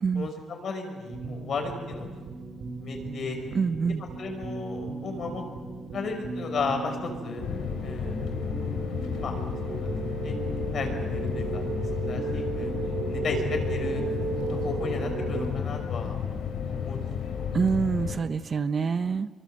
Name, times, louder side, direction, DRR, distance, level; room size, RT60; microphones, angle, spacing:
voice 1, 0.2-2.1 2.8-3.4 4.2-5.4 5.9-7.4 7.8-8.3 9.2-9.3 9.6-9.9 10.2-10.3 10.7-11.6 12.0-12.7 13.1-14.0 14.5-16.2 16.7-17.0 17.3-17.6, left 4 dB, 55° left, 4 dB, 5.5 m, -34 dB
sound 1, 1.1-15.5, right 4 dB, 65° right, 4.2 m, -35 dB
voice 2, 3.5-4.0 17.5-19.3, right 5 dB, 45° right, 12 dB, 0.9 m, -26 dB
sound 2, 7.4-18.2, left 7 dB, 85° left, 3.2 m, -32 dB
25.0 x 23.5 x 7.9 m, 1.4 s
cardioid pair, 90°, 0 cm